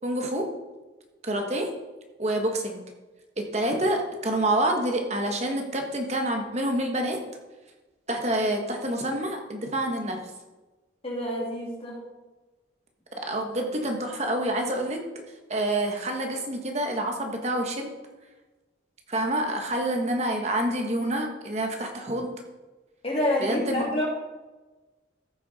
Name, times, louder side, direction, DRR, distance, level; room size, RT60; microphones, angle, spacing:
voice 1, 0.0-0.5 1.2-1.7 2.2-2.8 3.4-7.2 8.1-10.2 13.3-15.0 15.5-17.9 19.1-22.3 23.4-23.9, right 1 dB, 35° right, 3 dB, 1.4 m, -27 dB
voice 2, 11.0-12.0 23.0-24.0, left 1 dB, 30° left, -3 dB, 2.7 m, -27 dB
14.5 x 6.8 x 4.2 m, 1.2 s
head